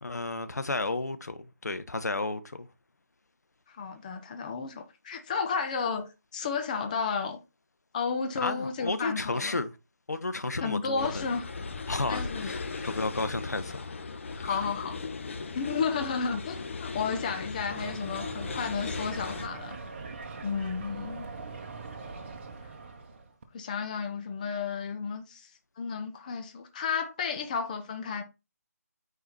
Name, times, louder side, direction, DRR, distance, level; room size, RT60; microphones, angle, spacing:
voice 1, 0.0-2.7 8.4-9.7 10.1-11.3 11.9-13.9 14.3-14.6, left 3 dB, 75° left, 1.4 m, -32 dB
voice 2, 3.7-7.4 7.9-9.6 10.6-11.4 12.1-12.5 14.4-15.0 15.5-19.8 20.4-21.3 23.5-25.5 25.8-28.2, left 5 dB, 30° left, 1.1 m, -32 dB
sound 1, 11.0-19.5, left 4 dB, 45° left, 1.4 m, -38 dB
sound 2, 17.7-23.4, right 4 dB, 40° right, 1.6 m, -42 dB
9.6 x 4.9 x 4.2 m
figure-of-eight pair, 160°, 9 cm